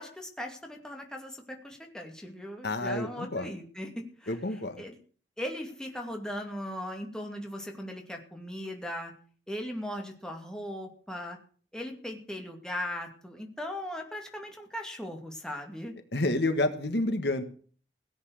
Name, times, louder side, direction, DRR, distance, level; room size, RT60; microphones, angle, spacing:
voice 1, 0.0-5.0 5.4-9.1 9.5-11.4 11.7-16.0, left 1 dB, 5° left, 2 dB, 2.5 m, -38 dB
voice 2, 2.6-3.5 4.3-4.8 16.1-17.4, left 2 dB, 65° left, 9 dB, 1.5 m, -29 dB
17.5 x 8.5 x 6.5 m, 0.43 s
head